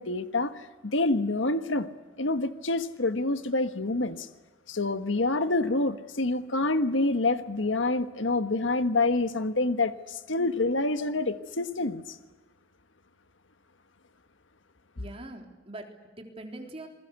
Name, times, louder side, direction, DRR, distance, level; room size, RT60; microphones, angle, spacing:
voice 1, 0.0-1.9 2.2-4.3 4.7-12.0, left 2 dB, 85° left, 10 dB, 1.4 m, -27 dB
voice 2, 15.0-16.9, right 1 dB, 30° right, 3 dB, 3.6 m, -43 dB
27.5 x 21.0 x 8.1 m, 1.2 s
head